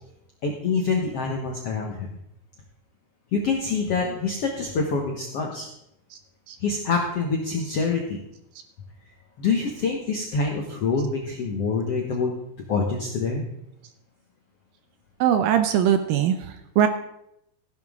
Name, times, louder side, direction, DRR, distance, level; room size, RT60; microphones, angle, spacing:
voice 1, 0.4-2.1 3.3-5.7 6.6-8.2 9.4-12.3 12.7-13.4, left 4 dB, 70° left, 1 dB, 1.4 m, -26 dB
voice 2, 15.2-16.9, right 9 dB, 75° right, 8 dB, 2.2 m, -21 dB
15.0 x 10.5 x 3.6 m, 0.79 s
omnidirectional pair, 4.5 m